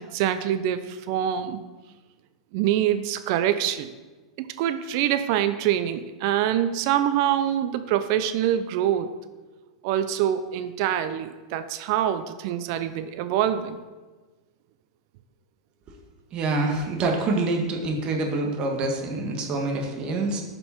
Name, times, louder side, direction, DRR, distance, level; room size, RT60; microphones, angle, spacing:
voice 1, 0.0-1.6 2.5-3.9 4.4-9.1 9.8-13.8, right 11 dB, 55° right, 11 dB, 0.6 m, -25 dB
voice 2, 16.3-20.4, right 2 dB, 35° right, 2 dB, 1.7 m, -26 dB
10.5 x 5.4 x 4.4 m, 1.3 s
hypercardioid pair, 95°, 3 cm